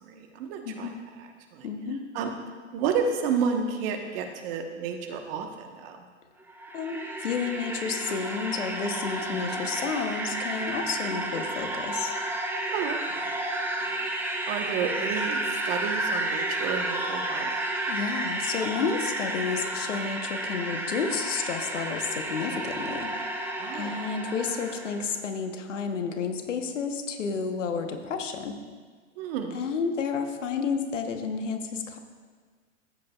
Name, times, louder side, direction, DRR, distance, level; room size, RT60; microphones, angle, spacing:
voice 1, 0.0-1.7 2.1-2.3 2.7-6.0 9.3-9.7 12.7-13.2 13.9-14.0 14.5-17.5 22.5-22.6 23.6-24.2 29.2-29.6, right 6 dB, 50° right, 5 dB, 1.3 m, -31 dB
voice 2, 1.6-2.0 6.7-12.1 17.9-23.1 23.7-28.5 29.5-32.0, left 5 dB, 75° left, 6 dB, 1.1 m, -31 dB
sound 1, 6.4-25.1, right 1 dB, 5° right, 0.9 m, -31 dB
14.5 x 7.8 x 2.4 m, 1.5 s
hypercardioid pair, 105°, 37 cm